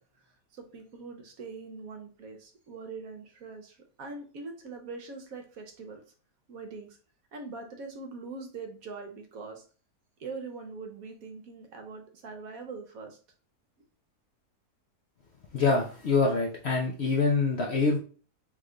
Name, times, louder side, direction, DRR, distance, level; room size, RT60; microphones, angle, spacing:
voice 1, 0.5-6.0 6.5-7.0 7.3-9.6 10.2-13.2, right 4 dB, 65° right, 4 dB, 1.1 m, -42 dB
voice 2, 15.5-18.0, left 4 dB, 60° left, 0 dB, 0.7 m, -25 dB
3.5 x 3.3 x 3.8 m, 0.39 s
omnidirectional pair, 1.7 m